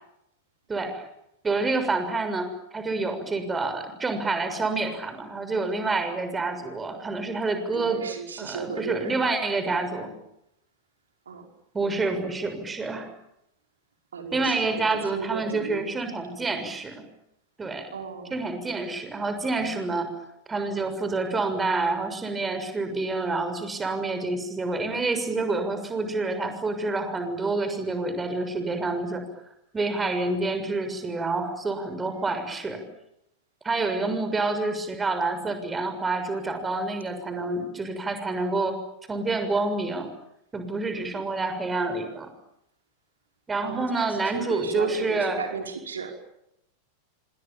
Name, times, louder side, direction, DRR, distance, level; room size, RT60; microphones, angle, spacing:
voice 1, 0.7-1.0 1.4-8.0 8.4-10.1 11.7-13.1 14.3-17.0 17.6-17.9 18.3-20.1 20.5-29.3 29.7-32.8 33.6-38.8 39.1-40.1 40.5-42.3 43.5-45.4, right 3 dB, 15° right, 8 dB, 6.7 m, -28 dB
voice 2, 7.7-9.4 11.3-11.5 14.1-15.9 17.9-18.4 43.6-46.1, right 5 dB, 70° right, 4 dB, 5.5 m, -35 dB
29.0 x 26.0 x 7.4 m, 0.80 s
figure-of-eight pair, 90°, 0 cm